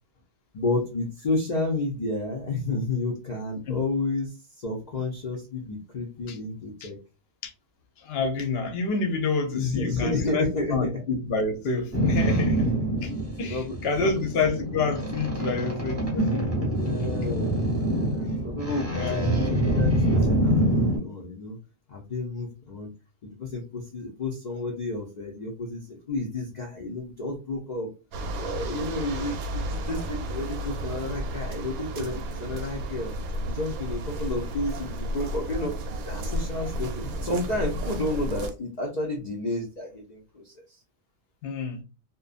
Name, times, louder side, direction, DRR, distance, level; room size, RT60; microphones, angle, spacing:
voice 1, 0.5-7.0 9.5-11.0 13.5-14.1 16.7-21.6 21.9-22.9 23.2-27.9 28.4-33.1 33.4-40.8, left 2 dB, 90° left, 0.3 m, -31 dB
voice 2, 8.0-12.7 13.0-13.1 13.4-16.7 18.9-19.3 41.4-41.8, left 4 dB, 60° left, 0.7 m, -28 dB
Boat Water vehicle, 11.9-21.0, right 1 dB, 15° right, 0.7 m, -25 dB
sound 1, 28.1-38.5, right 1 dB, 80° right, 1.0 m, -32 dB
2.5 x 2.2 x 2.4 m
omnidirectional pair, 1.5 m